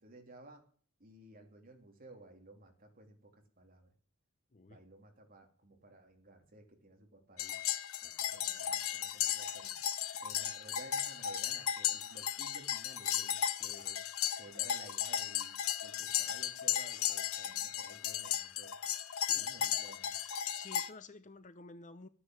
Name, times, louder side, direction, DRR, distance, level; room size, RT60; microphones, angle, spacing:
voice 1, 0.0-0.6 1.0-3.9 4.7-7.6 8.0-9.7 10.2-14.0 14.3-18.7 19.3-20.1, right 2 dB, 40° right, 3.2 m, -56 dB
sound 1, 7.4-20.9, left 10 dB, 70° left, 0.8 m, -35 dB
voice 2, 19.1-19.5 20.5-22.1, left 3 dB, 35° left, 0.7 m, -52 dB
12.5 x 10.0 x 7.8 m
head